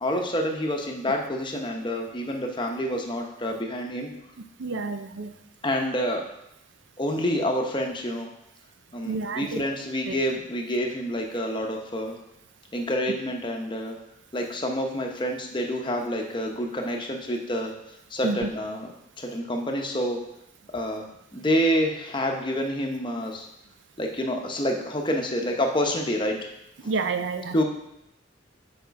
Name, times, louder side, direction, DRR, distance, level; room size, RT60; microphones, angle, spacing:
voice 1, 0.0-4.1 5.6-6.2 7.0-8.3 8.9-12.2 12.7-14.0 14.3-17.7 18.1-18.9 19.2-20.2 20.7-21.0 21.3-23.5 24.0-26.5 27.5-27.6, equal, 25° left, 2 dB, 0.9 m, -28 dB
voice 2, 4.6-5.3 9.0-9.6 10.1-10.2 18.2-18.4 26.8-27.5, right 4 dB, 60° right, 9 dB, 0.5 m, -29 dB
7.1 x 5.1 x 5.2 m, 0.84 s
head